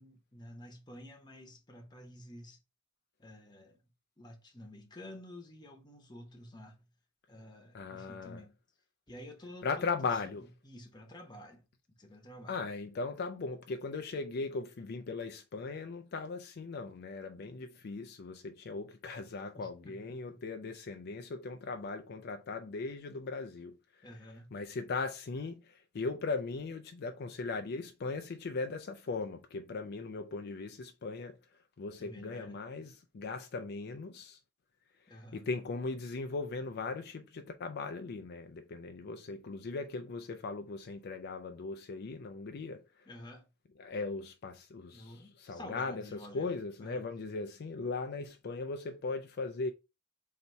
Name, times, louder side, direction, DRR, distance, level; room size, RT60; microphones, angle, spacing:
voice 1, 0.0-2.6 3.2-3.8 4.2-6.9 7.3-8.6 9.1-9.8 10.4-11.6 12.0-12.6 19.5-20.4 24.0-24.5 32.0-32.6 35.1-35.5 43.1-43.5 44.9-46.5 46.8-47.1, left 1 dB, 20° left, 1.1 m, -50 dB
voice 2, 7.7-8.4 9.6-10.5 12.5-23.8 24.5-31.4 31.8-34.4 35.1-42.8 43.8-49.7, left 4 dB, 55° left, 0.4 m, -38 dB
4.0 x 2.9 x 4.4 m
head